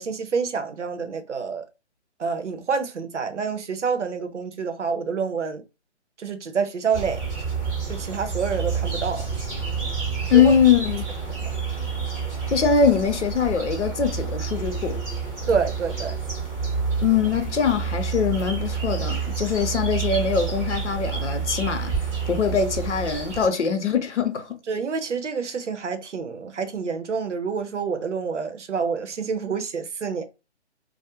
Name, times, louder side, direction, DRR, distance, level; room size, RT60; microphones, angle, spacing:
voice 1, 0.0-1.6 2.2-5.6 6.2-7.2 7.9-9.3 10.3-10.5 11.3-11.5 15.5-16.1 24.7-30.2, right 5 dB, 85° right, 0.7 m, -27 dB
sound 1, 6.9-23.5, right 5 dB, 10° right, 0.8 m, -29 dB
voice 2, 10.3-11.0 12.5-15.0 17.0-21.9 22.3-24.6, left 7 dB, 80° left, 0.7 m, -22 dB
2.3 x 2.1 x 2.9 m
figure-of-eight pair, 140°, 35 cm